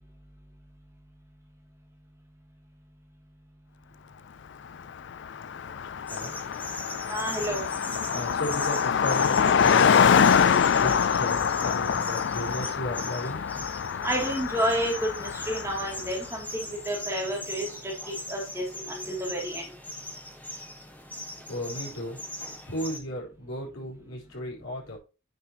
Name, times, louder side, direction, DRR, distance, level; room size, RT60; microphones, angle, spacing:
Car passing by, 4.8-4.9 5.1-16.1, left 7 dB, 60° left, 0.4 m, -25 dB
voice 1, 5.9-6.3 8.1-13.5 21.3-22.2 22.7-25.0, equal, 85° left, -4 dB, 4.5 m, -35 dB
sound 1, 6.1-23.0, left 1 dB, 10° left, 1.2 m, -40 dB
voice 2, 7.1-7.6 14.0-16.5 16.9-17.7 18.3-19.6, equal, 15° right, -1 dB, 2.7 m, -30 dB
9.3 x 6.6 x 2.9 m, 0.32 s
head